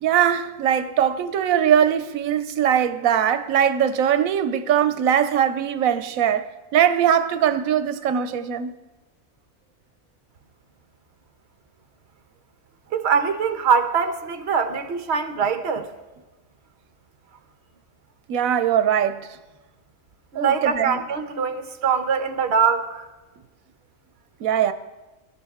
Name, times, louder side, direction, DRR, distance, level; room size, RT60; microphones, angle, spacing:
voice 1, 0.0-6.5 6.7-8.7 18.3-19.4 20.4-21.0 24.4-24.7, right 9 dB, 85° right, 1.1 m, -21 dB
voice 2, 12.9-15.9 20.3-23.1, right 6 dB, 55° right, 1.1 m, -23 dB
21.0 x 12.0 x 3.6 m
omnidirectional pair, 1.4 m